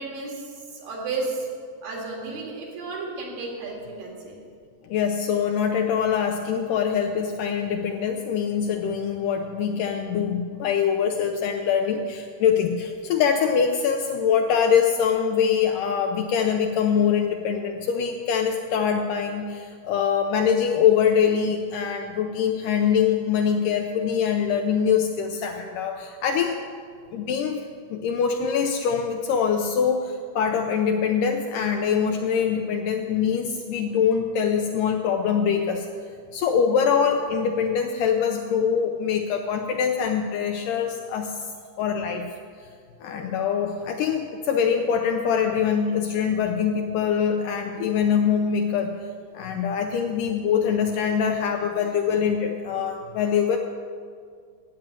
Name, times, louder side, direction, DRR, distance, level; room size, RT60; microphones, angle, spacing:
voice 1, 0.0-1.5 1.8-4.4, right 3 dB, 75° right, -1 dB, 3.8 m, -33 dB
voice 2, 4.8-26.6 27.1-27.7 27.9-35.9 36.3-41.4 41.8-42.2 43.0-49.0 49.3-53.6, left 7 dB, 75° left, 3 dB, 2.1 m, -23 dB
8.9 x 8.7 x 8.9 m, 2.1 s
omnidirectional pair, 4.1 m